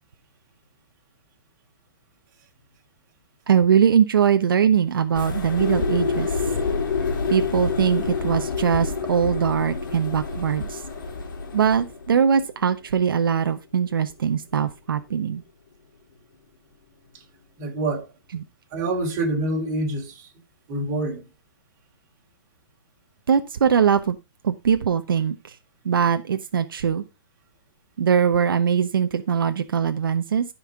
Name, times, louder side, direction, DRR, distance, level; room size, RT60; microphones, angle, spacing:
voice 1, 3.5-6.3 7.3-10.8 11.5-15.4 18.3-18.4 23.3-24.2 24.4-25.6 25.8-27.0 28.0-30.4, right 7 dB, 75° right, 1.0 m, -21 dB
sound 1, 5.1-12.1, left 2 dB, 60° left, 3.2 m, -31 dB
sound 2, 5.6-13.4, left 6 dB, 75° left, 2.0 m, -30 dB
voice 2, 17.6-18.1 18.7-20.3 20.7-21.2, right 2 dB, 25° right, 3.7 m, -26 dB
15.0 x 5.7 x 3.6 m
hypercardioid pair, 160°, 12 cm